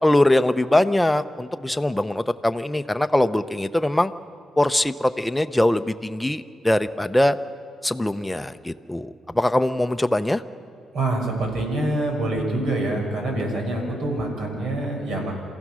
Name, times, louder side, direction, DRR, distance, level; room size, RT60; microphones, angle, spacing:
voice 1, 0.0-4.1 4.6-7.4 7.8-10.4, left 1 dB, 10° left, 9 dB, 0.8 m, -22 dB
voice 2, 10.9-15.3, right 1 dB, 70° right, 1 dB, 5.8 m, -25 dB
28.0 x 15.5 x 6.4 m, 2.4 s
cardioid pair, 90°, 0 cm